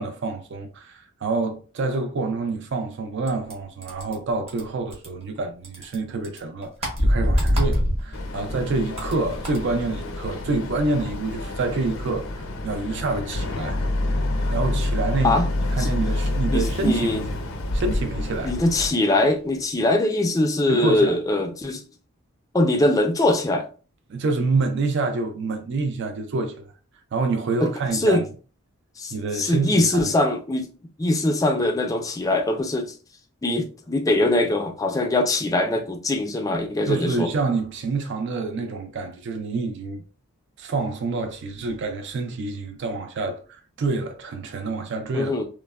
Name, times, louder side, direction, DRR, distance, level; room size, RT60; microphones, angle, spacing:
voice 1, 0.0-13.8 14.1-14.2 14.5-15.4 15.7-17.5 17.7-18.5 20.7-21.2 24.1-26.7 27.1-28.2 29.1-30.1 36.9-40.0 40.6-45.4, right 3 dB, 55° right, 0.4 m, -27 dB
sound 1, 3.2-5.4 5.6-8.1 8.4-9.7, right 1 dB, 30° right, 0.8 m, -37 dB
sound 2, 6.9-10.3 10.6-12.9 13.1-13.5 13.8-15.7 16.0-16.1 16.5-16.9 17.2-17.3 19.5-19.6, equal, 75° right, 1.1 m, -24 dB
Boat Water vehicle, 8.1-18.9, left 1 dB, 75° left, 0.5 m, -28 dB
voice 2, 16.5-17.2 18.4-21.8 22.5-23.7 27.6-28.2 29.0-30.7 31.0-32.9 33.4-37.3 45.1-45.4, left 2 dB, 15° left, 0.3 m, -22 dB
3.1 x 2.0 x 2.2 m
head